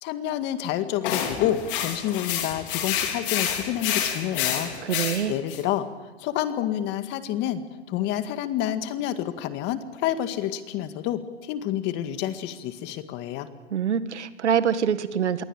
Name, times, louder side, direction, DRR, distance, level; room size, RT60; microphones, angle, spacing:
voice 1, 0.0-4.7 5.3-7.6 7.9-13.5, left 11 dB, 30° left, 10 dB, 1.9 m, -28 dB
sound 1, 1.0-5.6, left 9 dB, 50° left, 4.8 m, -28 dB
voice 2, 4.8-5.3 13.7-15.4, right 8 dB, 85° right, 12 dB, 1.9 m, -25 dB
26.5 x 23.0 x 8.9 m, 1.2 s
hypercardioid pair, 140°, 34 cm